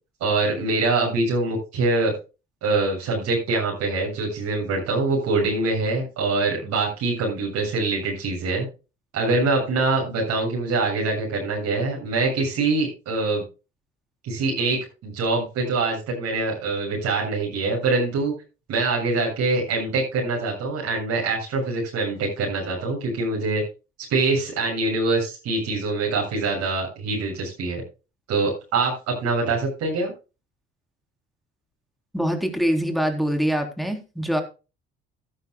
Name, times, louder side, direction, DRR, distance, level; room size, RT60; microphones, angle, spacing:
voice 1, 0.2-2.1 2.6-8.7 9.1-13.4 14.2-18.3 18.7-23.6 24.1-27.8 28.3-30.1, right 3 dB, 60° right, -3 dB, 7.2 m, -24 dB
voice 2, 32.1-34.4, equal, ahead, 5 dB, 3.8 m, -24 dB
16.0 x 12.0 x 2.3 m, 0.31 s
figure-of-eight pair, 50°, 31 cm